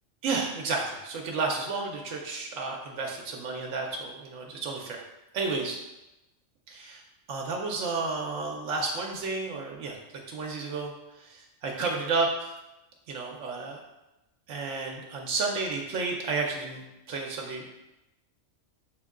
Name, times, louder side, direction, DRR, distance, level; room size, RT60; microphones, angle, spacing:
voice 1, 0.2-5.0 5.3-5.8 6.7-7.0 7.3-10.0 10.3-10.9 11.2-12.5 13.1-13.8 14.5-17.7, right 3 dB, 85° right, 0 dB, 1.0 m, -31 dB
6.3 x 2.2 x 3.6 m, 0.97 s
omnidirectional pair, 1.3 m